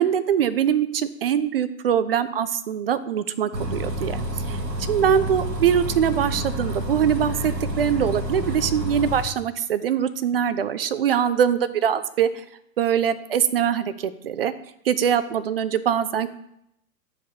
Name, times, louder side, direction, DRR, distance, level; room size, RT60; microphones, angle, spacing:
voice 1, 0.0-4.2 4.5-4.6 4.9-12.4 12.8-14.5 14.9-16.3, right 9 dB, 40° right, 14 dB, 0.4 m, -23 dB
Bus, 3.5-9.2, equal, 90° right, 1.0 m, -29 dB
9.9 x 4.8 x 2.8 m, 0.79 s
figure-of-eight pair, 105°, 49 cm